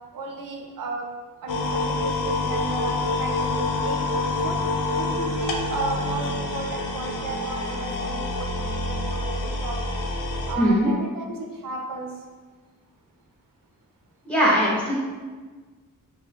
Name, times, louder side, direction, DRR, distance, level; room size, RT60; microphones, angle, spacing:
voice 1, 0.1-1.0 1.4-4.6 4.9-10.0 10.5-12.1, right 3 dB, 75° right, 1 dB, 0.5 m, -34 dB
sound 1, 1.5-10.5, left 2 dB, 75° left, 0.5 m, -27 dB
voice 2, 10.6-10.9 14.2-14.9, equal, 5° left, -6 dB, 0.8 m, -20 dB
4.2 x 2.7 x 2.3 m, 1.4 s
wide cardioid pair, 140°, 33 cm